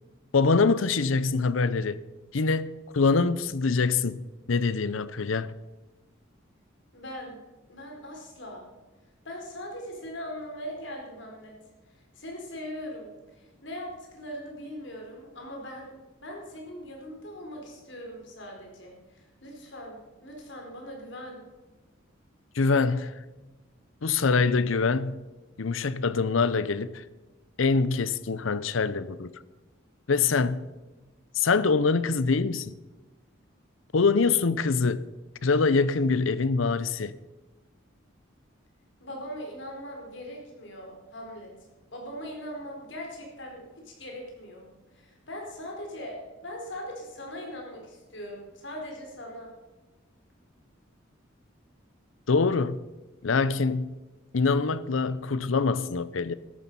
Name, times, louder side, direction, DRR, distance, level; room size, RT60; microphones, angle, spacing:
voice 1, 0.3-2.0 2.3-4.2 4.5-5.5 22.5-23.1 24.0-25.2 25.6-27.0 27.6-29.3 30.1-30.7 31.4-32.7 33.9-35.1 35.4-37.2 52.3-52.8 53.2-54.0 54.3-56.3, left 4 dB, 85° left, 0.7 m, -24 dB
voice 2, 6.9-7.4 7.7-8.7 9.2-11.5 11.9-15.9 16.2-21.4 39.0-41.5 41.9-44.7 44.9-49.5, equal, 65° left, 4.4 m, -40 dB
13.5 x 12.0 x 5.5 m
head